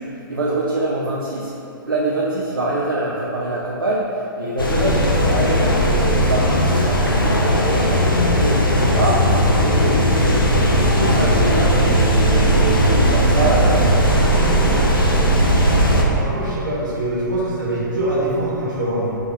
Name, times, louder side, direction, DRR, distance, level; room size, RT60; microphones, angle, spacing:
voice 1, 0.0-1.5 1.9-14.9, right 2 dB, 75° right, -5 dB, 0.6 m, -25 dB
sound 1, 4.6-16.0, equal, 85° left, 0.6 m, -17 dB
voice 2, 16.1-19.2, right 1 dB, 60° right, -6 dB, 1.3 m, -23 dB
4.1 x 3.4 x 3.4 m, 2.7 s
figure-of-eight pair, 115°, 11 cm